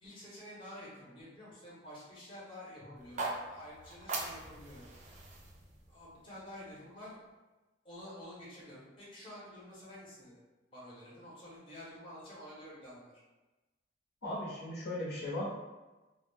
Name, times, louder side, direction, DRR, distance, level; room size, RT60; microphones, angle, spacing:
voice 1, 0.0-4.8 5.9-7.2 7.8-10.4 10.7-13.2, left 1 dB, 25° left, -7 dB, 0.8 m, -49 dB
sound 1, 3.0-7.1, right 3 dB, 40° right, 0.4 m, -42 dB
voice 2, 14.2-15.6, left 1 dB, 60° left, -7 dB, 0.8 m, -37 dB
2.3 x 2.0 x 3.4 m, 1.1 s
head